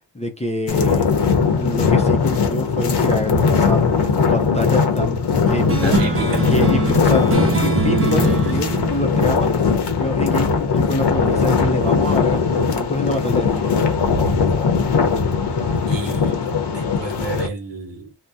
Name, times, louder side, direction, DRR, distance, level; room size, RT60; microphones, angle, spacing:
voice 1, 0.1-1.1 1.6-3.8 4.3-5.2 5.5-6.0 6.5-7.3 7.6-9.5 10.0-13.5, left 1 dB, 15° left, 0.5 m, -25 dB
sound 1, 0.7-17.5, left 5 dB, 60° left, 0.8 m, -19 dB
sound 2, 5.5-10.4, right 4 dB, 30° right, 0.6 m, -24 dB
voice 2, 5.8-6.5 15.9-16.4 16.7-18.1, right 4 dB, 70° right, 1.0 m, -31 dB
2.7 x 2.1 x 3.3 m
wide cardioid pair, 130°, 45 cm